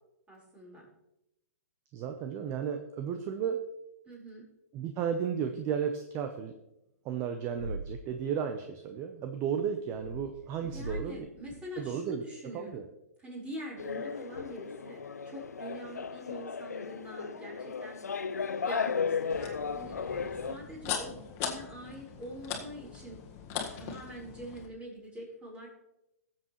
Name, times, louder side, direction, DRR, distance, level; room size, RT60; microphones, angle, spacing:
voice 1, 0.3-0.9 4.1-4.5 10.6-12.9 13.2-18.0 18.6-20.0 20.4-23.2 23.5-25.7, equal, 15° right, -3 dB, 4.5 m, -44 dB
voice 2, 1.9-3.6 4.7-6.6 7.0-11.3 11.8-12.2 12.5-12.8, right 7 dB, 30° right, 7 dB, 0.8 m, -34 dB
sound 1, 7.5-8.1 9.9-11.1 11.4-11.5, equal, 75° right, 1.8 m, -40 dB
sound 2, 13.8-20.6, left 5 dB, 90° left, 0.5 m, -35 dB
sound 3, 19.3-24.7, left 8 dB, 35° left, 1.7 m, -40 dB
19.5 x 7.6 x 3.2 m, 0.89 s
hypercardioid pair, 125°, 8 cm